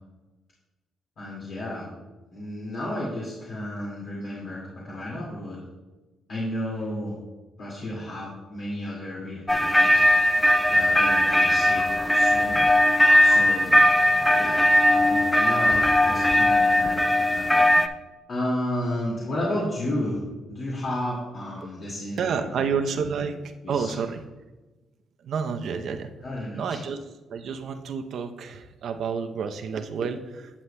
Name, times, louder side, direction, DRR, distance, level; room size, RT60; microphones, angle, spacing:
voice 1, 1.2-1.9 2.3-5.6 6.3-7.2 7.6-10.0 10.7-12.6 13.2-13.8 14.1-14.6 14.9-17.7 18.3-20.2 20.5-23.4 23.6-24.0 26.2-26.8, left 1 dB, 60° left, -6 dB, 2.0 m, -32 dB
sound 1, 9.5-17.9, left 1 dB, 5° left, 0.5 m, -19 dB
voice 2, 22.2-24.2 25.2-26.1 26.6-27.0 27.3-30.5, right 6 dB, 65° right, 6 dB, 0.6 m, -29 dB
11.0 x 7.2 x 2.2 m, 1.2 s
cardioid pair, 90°, 0 cm